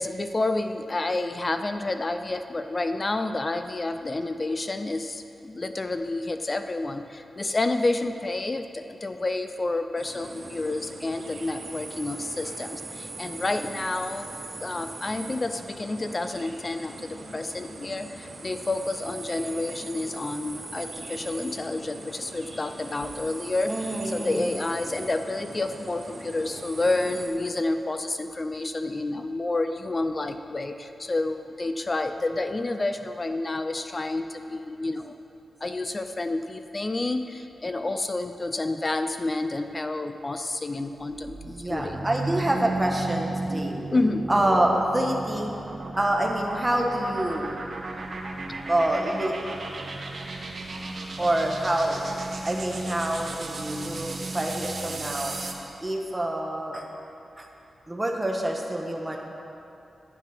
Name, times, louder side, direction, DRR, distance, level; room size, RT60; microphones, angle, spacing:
voice 1, 0.0-14.3 14.6-23.7 24.0-35.1 35.6-42.1 43.9-44.3, left 2 dB, 30° left, 8 dB, 0.4 m, -29 dB
sound 1, 10.0-27.3, right 2 dB, 70° right, 2.6 m, -41 dB
voice 2, 23.7-24.5 41.4-43.8 44.3-45.5 46.0-47.5 48.7-49.3 51.2-52.0 52.4-54.1 54.3-55.3 55.8-56.8 57.4-57.5 57.9-59.2, right 1 dB, 15° right, 0 dB, 1.3 m, -26 dB
sound 2, 41.0-55.7, right 2 dB, 50° right, 1.1 m, -35 dB
10.5 x 9.2 x 5.9 m, 2.8 s
wide cardioid pair, 125°, 0 cm